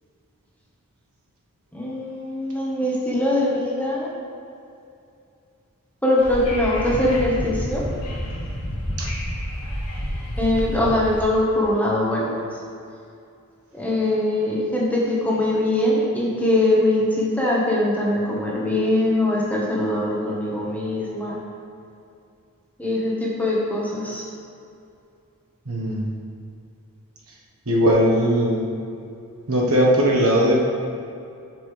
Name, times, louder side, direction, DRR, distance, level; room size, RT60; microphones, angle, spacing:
voice 1, 1.7-4.1 6.0-7.8 10.4-12.3 13.7-21.4 22.8-24.2, left 1 dB, 5° left, -5 dB, 1.4 m, -22 dB
Wind / Subway metro underground, 6.2-11.2, equal, 80° left, 1.6 m, -29 dB
voice 2, 25.7-26.0 27.7-28.7 29.5-30.6, equal, 65° right, -3 dB, 1.4 m, -19 dB
8.8 x 6.4 x 3.4 m, 2.5 s
head